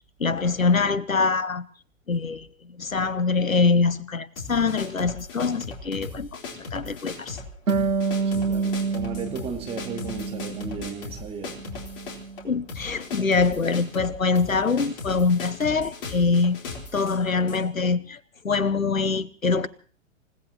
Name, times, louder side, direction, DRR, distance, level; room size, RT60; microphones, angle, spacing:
voice 1, 0.2-1.6 2.1-2.5 2.8-6.3 6.5-7.4 12.4-16.6 16.9-18.2 18.4-19.7, left 4 dB, 85° left, 1.0 m, -24 dB
sound 1, 4.4-17.6, left 4 dB, 45° left, 4.0 m, -38 dB
Harp, 7.7-11.1 11.4-12.5, right 5 dB, 90° right, 0.7 m, -28 dB
voice 2, 8.2-11.7, right 5 dB, 15° right, 2.2 m, -35 dB
29.0 x 17.5 x 2.9 m
figure-of-eight pair, 115°, 39 cm